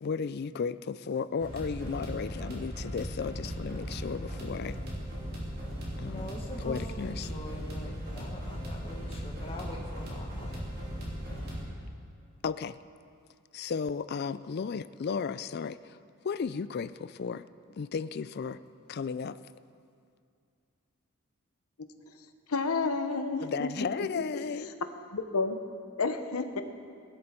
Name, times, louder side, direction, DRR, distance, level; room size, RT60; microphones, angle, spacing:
voice 1, 0.0-4.8 6.0-6.3 6.6-7.3 12.4-12.8 13.5-16.0 16.2-17.5 17.8-18.6 18.9-19.4 23.4-24.7, left 5 dB, 45° left, 14 dB, 0.3 m, -34 dB
sound 1, 1.4-11.6, equal, 45° right, 3.4 m, -38 dB
voice 2, 6.0-10.7, left 1 dB, 25° left, -1 dB, 1.4 m, -43 dB
voice 3, 22.5-23.7 24.3-24.4 25.1-25.6 26.0-26.6, left 4 dB, 80° left, 8 dB, 0.9 m, -30 dB
19.0 x 11.0 x 4.4 m, 2.3 s
head